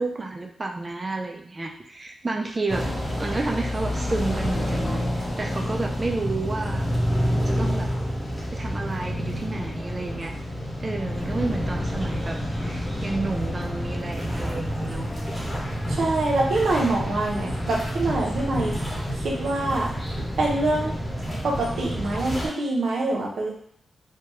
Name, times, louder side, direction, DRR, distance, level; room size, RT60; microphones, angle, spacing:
voice 1, 0.0-2.8 3.2-6.8 7.5-7.9 8.5-10.3 10.8-15.2, right 3 dB, 25° right, 2 dB, 0.4 m, -31 dB
sound 1, 2.7-22.5, equal, 10° left, 1.0 m, -28 dB
voice 2, 15.9-18.7 19.1-19.9 20.4-20.9 21.4-23.5, right 2 dB, 75° right, -2 dB, 0.8 m, -25 dB
3.3 x 2.2 x 3.1 m, 0.67 s
wide cardioid pair, 150°, 0 cm